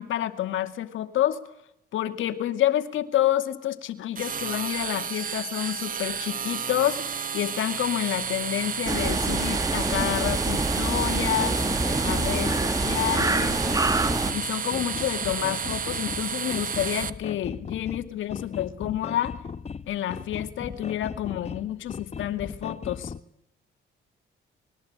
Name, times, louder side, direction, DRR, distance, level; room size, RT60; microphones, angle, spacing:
voice 1, 0.0-1.4 1.9-11.6 12.0-13.6 14.3-19.4 19.9-23.1, left 12 dB, 80° left, 8 dB, 2.3 m, -29 dB
sound 1, 4.1-17.1, right 6 dB, 45° right, 1.5 m, -31 dB
sound 2, 8.9-14.3, right 2 dB, 15° right, 2.0 m, -26 dB
sound 3, 11.3-23.2, left 5 dB, 35° left, 1.0 m, -38 dB
25.0 x 21.5 x 8.8 m, 0.78 s
cardioid pair, 90°, 20 cm